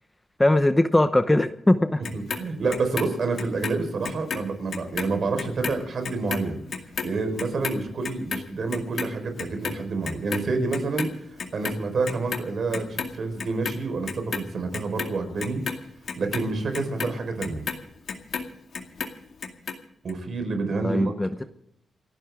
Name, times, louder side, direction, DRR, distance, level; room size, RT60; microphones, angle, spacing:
voice 1, 0.4-2.0 20.8-21.4, left 1 dB, 10° left, 10 dB, 0.8 m, -20 dB
Clock, 2.0-4.4 4.7-11.1 11.4-12.4 12.7-13.7 14.1-18.5 18.7-19.7 20.1-20.2, left 5 dB, 60° left, 2.1 m, -32 dB
voice 2, 2.1-6.6 7.0-11.1 11.5-15.6 16.2-17.6 20.0-21.2, right 3 dB, 55° right, 6 dB, 4.5 m, -28 dB
29.0 x 11.0 x 3.6 m, 0.75 s
wide cardioid pair, 115°, 0 cm